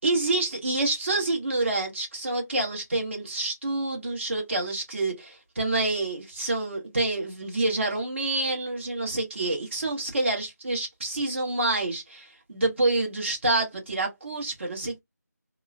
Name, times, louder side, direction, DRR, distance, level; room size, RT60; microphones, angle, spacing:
voice 1, 0.0-15.0, right 2 dB, 40° right, 1.3 m, -27 dB
3.6 x 2.1 x 2.5 m
figure-of-eight pair, 175°, 10 cm